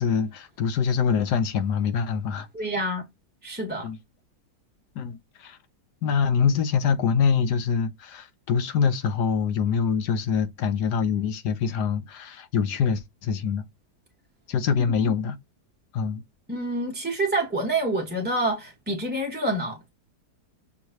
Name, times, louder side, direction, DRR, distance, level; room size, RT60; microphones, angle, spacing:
voice 1, 0.0-2.5 3.8-4.0 5.0-5.6 6.0-13.6 14.5-15.4 15.9-16.2, left 6 dB, 85° left, 1.4 m, -24 dB
voice 2, 2.5-3.0 3.4-3.9 15.0-15.1 16.5-19.9, right 1 dB, 5° right, 1.0 m, -27 dB
6.0 x 3.1 x 2.7 m
omnidirectional pair, 1.7 m